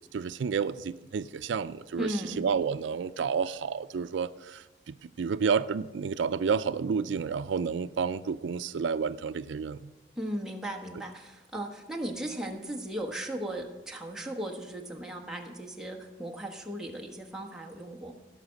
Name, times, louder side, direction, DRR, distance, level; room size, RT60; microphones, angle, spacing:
voice 1, 0.1-9.9, right 6 dB, 80° right, 14 dB, 0.4 m, -30 dB
voice 2, 2.0-2.4 10.2-18.1, right 1 dB, 5° right, 0 dB, 1.2 m, -37 dB
16.5 x 5.8 x 6.3 m, 1.1 s
head